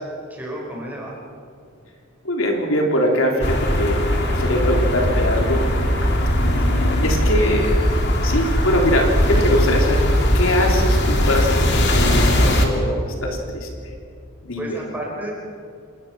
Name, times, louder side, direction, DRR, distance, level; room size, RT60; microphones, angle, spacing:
voice 1, 0.3-1.2 6.7-7.0 14.6-15.3, right 1 dB, 10° right, -3 dB, 5.8 m, -32 dB
voice 2, 2.2-5.7 7.0-7.7 8.2-10.0 10.3-13.7 14.4-14.8, left 1 dB, 75° left, 1 dB, 3.3 m, -22 dB
sound 1, 3.4-12.7, equal, 55° left, 2.8 m, -19 dB
27.5 x 20.0 x 6.1 m, 2.4 s
head